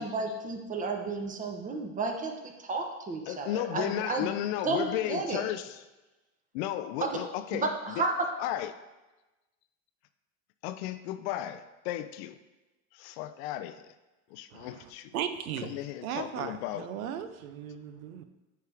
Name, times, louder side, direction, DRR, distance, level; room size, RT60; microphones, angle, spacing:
voice 1, 0.0-2.3 2.6-4.3 4.6-5.4 7.0-7.1 7.5-8.2, right 3 dB, 20° right, 4 dB, 0.9 m, -32 dB
voice 2, 3.3-5.8 6.5-8.0 8.4-8.7 10.6-12.4 12.9-13.9 14.3-15.1 15.6-16.9, left 13 dB, 55° left, 11 dB, 0.4 m, -34 dB
voice 3, 14.5-15.7 16.0-18.2, right 9 dB, 80° right, 10 dB, 0.7 m, -37 dB
9.3 x 3.5 x 3.4 m, 1.1 s
hypercardioid pair, 110°, 41 cm